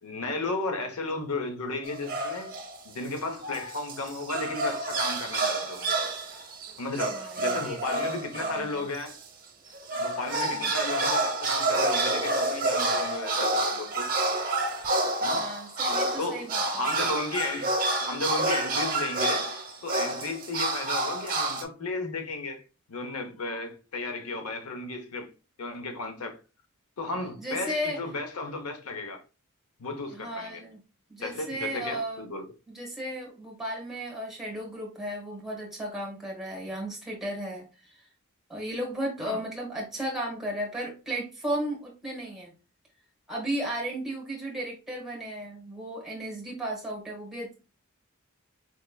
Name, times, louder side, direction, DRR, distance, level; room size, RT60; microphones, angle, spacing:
voice 1, 0.0-2.6 2.8-6.0 6.8-9.2 9.9-14.1 15.2-15.5 16.2-17.7 18.0-19.6 19.8-22.6 22.9-25.3 25.6-26.4 27.0-29.2 29.8-30.6 31.2-32.4 39.2-39.4, left 3 dB, 85° left, 0.8 m, -34 dB
sound 1, 1.9-2.7 3.2-9.2 9.7-21.6, right 2 dB, 40° right, 0.8 m, -29 dB
voice 2, 7.1-8.1 8.4-8.9 10.6-10.7 15.3-16.8 27.4-28.0 30.1-30.8 31.1-32.3 32.7-38.1 38.5-42.5 43.3-47.5, right 1 dB, ahead, 1.5 m, -35 dB
4.6 x 3.3 x 2.2 m
head